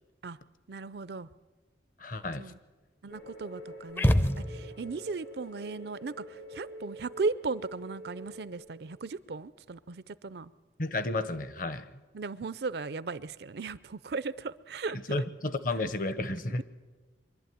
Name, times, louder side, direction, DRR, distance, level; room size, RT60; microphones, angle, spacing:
voice 1, 0.7-1.3 2.4-2.6 3.0-10.5 12.1-15.0, right 4 dB, 60° right, 17 dB, 0.5 m, -36 dB
voice 2, 2.0-2.5 10.8-11.9 14.9-16.6, left 2 dB, 45° left, 13 dB, 0.9 m, -32 dB
sound 1, 3.1-8.5, equal, 80° left, 7.3 m, -46 dB
sound 2, 4.0-5.0, equal, 10° left, 0.5 m, -26 dB
23.5 x 12.0 x 9.3 m, 1.4 s
head